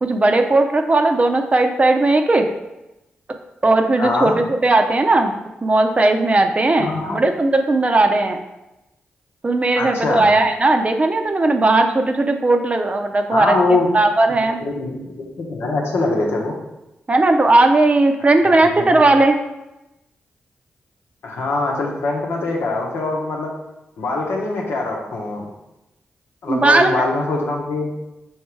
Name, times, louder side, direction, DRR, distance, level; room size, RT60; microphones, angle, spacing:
voice 1, 0.0-2.5 3.6-5.3 5.6-8.4 9.4-14.6 17.1-19.4 26.5-26.9, right 2 dB, 35° right, 6 dB, 0.5 m, -17 dB
voice 2, 4.0-4.4 6.8-7.2 9.8-10.3 13.3-13.9 14.6-16.5 18.4-18.9 21.2-23.5 24.0-25.5 26.4-27.9, left 2 dB, 75° left, -1 dB, 1.0 m, -23 dB
3.6 x 3.1 x 4.5 m, 0.95 s
cardioid pair, 55°, 4 cm